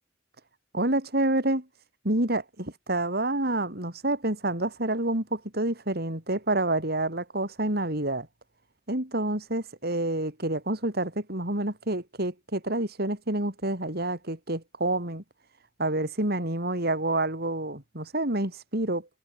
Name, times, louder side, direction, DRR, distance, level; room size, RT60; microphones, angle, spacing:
voice 1, 0.7-1.7 2.0-8.3 8.9-15.2 15.8-19.1, right 1 dB, 60° right, 6.4 m, -28 dB
head